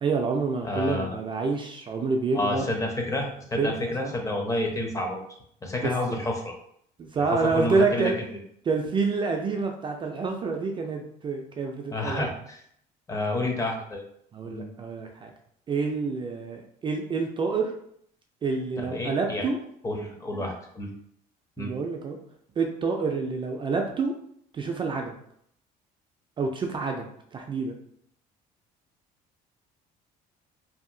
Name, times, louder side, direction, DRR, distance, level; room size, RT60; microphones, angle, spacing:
voice 1, 0.0-2.7 3.6-4.1 5.8-5.9 7.0-8.2 8.7-12.2 14.3-15.3 15.7-17.7 18.4-19.6 21.6-22.2 22.6-24.1 24.5-25.1 26.4-27.1 27.3-27.7, right 4 dB, 30° right, 2 dB, 0.3 m, -27 dB
voice 2, 0.6-1.2 2.3-5.2 5.6-6.5 7.2-8.1 11.9-12.6 13.1-14.0 14.4-14.7 18.8-19.5 19.8-20.9 21.6-21.7, left 1 dB, 20° left, 1 dB, 0.6 m, -29 dB
2.7 x 2.6 x 2.6 m, 0.68 s
cardioid pair, 110°, 17 cm